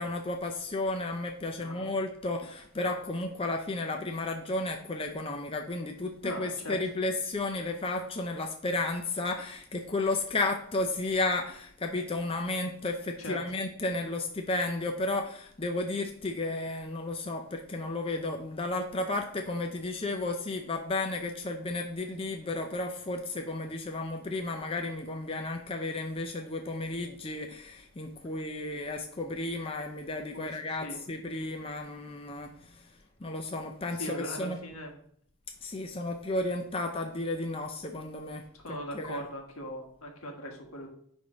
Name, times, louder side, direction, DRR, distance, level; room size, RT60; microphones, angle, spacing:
voice 1, 0.0-32.8 33.2-34.6 35.6-39.2, left 2 dB, 25° left, 3 dB, 0.5 m, -33 dB
voice 2, 1.6-1.9 6.2-6.8 13.2-13.4 30.3-31.0 33.9-35.0 38.5-40.9, equal, 80° left, 1 dB, 1.7 m, -40 dB
9.5 x 3.6 x 5.1 m, 0.65 s
head